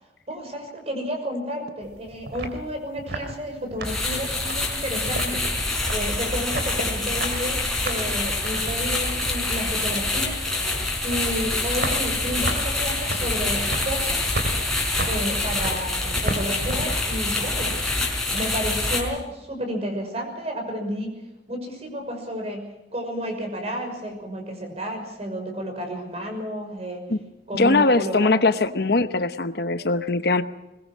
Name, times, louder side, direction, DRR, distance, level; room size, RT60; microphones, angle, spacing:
voice 1, 0.3-5.4 5.9-10.4 11.0-14.3 15.1-17.8 18.3-21.1 21.5-27.1 27.5-28.4 28.7-28.8, equal, 35° right, 4 dB, 5.9 m, -31 dB
sound 1, 1.8-18.4, right 1 dB, 70° right, 3.1 m, -35 dB
sound 2, 3.8-19.0, left 2 dB, ahead, 5.0 m, -26 dB
voice 2, 27.5-30.4, left 3 dB, 60° left, 10 dB, 0.9 m, -21 dB
22.0 x 20.5 x 6.3 m, 0.97 s
head